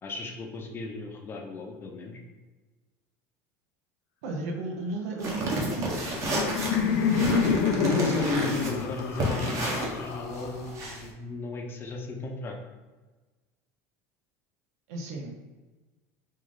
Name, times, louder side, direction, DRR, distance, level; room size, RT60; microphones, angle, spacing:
voice 1, 0.0-2.2 7.8-12.6, left 3 dB, 30° left, 1 dB, 0.6 m, -36 dB
voice 2, 4.2-6.2 14.9-15.4, right 3 dB, 85° right, 1 dB, 0.7 m, -34 dB
sound 1, 5.2-11.1, right 1 dB, 40° right, 0.9 m, -31 dB
Laughter, 5.8-10.8, left 6 dB, 75° left, 0.5 m, -28 dB
3.2 x 2.4 x 3.8 m, 1.2 s
supercardioid pair, 125°, 8 cm